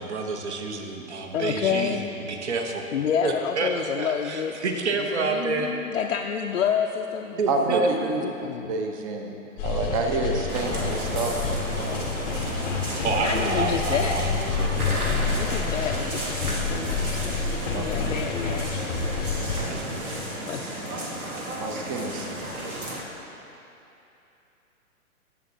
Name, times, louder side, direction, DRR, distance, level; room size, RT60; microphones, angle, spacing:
voice 1, 0.0-2.8 3.2-5.7 7.4-8.1 13.0-15.1 19.7-19.9, right 4 dB, 50° right, 3 dB, 1.1 m, -29 dB
voice 2, 1.3-2.1 2.9-4.6 5.0-7.4 8.2-8.7 13.0-14.2 15.3-19.0 20.5-20.7, left 8 dB, 60° left, 2 dB, 0.6 m, -29 dB
voice 3, 7.5-8.2 8.7-11.3 11.9-12.0 17.7-17.9 19.6-19.7 21.6-22.2 22.6-22.7, right 3 dB, 25° right, 2 dB, 0.7 m, -28 dB
sound 1, 9.6-19.6, left 4 dB, 15° left, 0.7 m, -29 dB
sound 2, 10.5-23.0, right 1 dB, 80° right, 1.5 m, -32 dB
19.0 x 7.0 x 2.7 m, 2.9 s
figure-of-eight pair, 120°, 42 cm